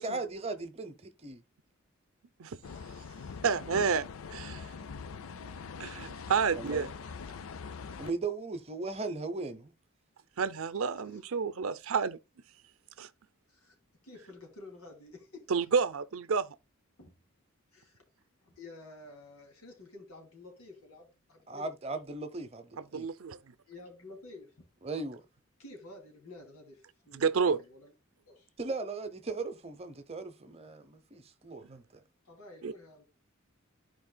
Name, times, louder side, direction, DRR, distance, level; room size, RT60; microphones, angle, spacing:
voice 1, 0.0-1.4 6.5-6.9 8.0-9.7 21.5-23.1 24.8-25.2 28.6-32.0, right 3 dB, 30° right, 0.8 m, -38 dB
sound 1, 2.6-8.1, left 5 dB, 70° left, 0.4 m, -43 dB
voice 2, 3.4-4.0 4.3-4.7 5.8-6.9 10.4-12.2 13.0-13.1 15.5-16.5 22.8-23.4 27.1-27.6 31.7-31.8 32.6-32.7, right 5 dB, 70° right, 0.5 m, -30 dB
voice 3, 10.8-11.2 13.5-13.8 14.0-15.5 17.0-17.2 17.7-18.0 18.4-21.7 23.7-24.7 25.6-27.9 28.2-28.5 32.2-33.0, left 2 dB, 90° left, 2.9 m, -51 dB
13.5 x 4.7 x 2.3 m
head